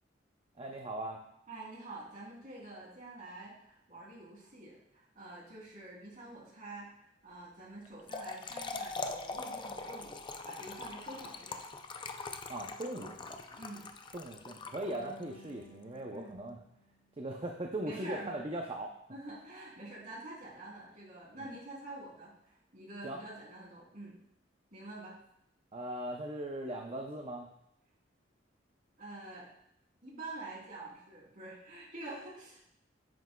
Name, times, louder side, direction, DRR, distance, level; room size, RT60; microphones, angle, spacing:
voice 1, 0.6-1.2 12.5-13.4 14.1-16.6 17.2-18.9 21.4-21.5 23.0-23.2 25.7-27.5, right 1 dB, 30° right, 2 dB, 0.6 m, -39 dB
voice 2, 1.5-6.9 7.2-11.7 13.5-13.8 16.1-16.3 17.8-18.4 19.1-24.2 24.7-25.2 29.0-29.5 30.0-32.7, right 2 dB, 45° right, -4 dB, 3.0 m, -47 dB
Trickle dribble / Fill (with liquid), 7.8-15.3, left 3 dB, 25° left, 0.5 m, -42 dB
sound 1, 15.0-18.1, equal, 60° left, 2.2 m, -58 dB
9.2 x 8.1 x 2.3 m, 0.77 s
head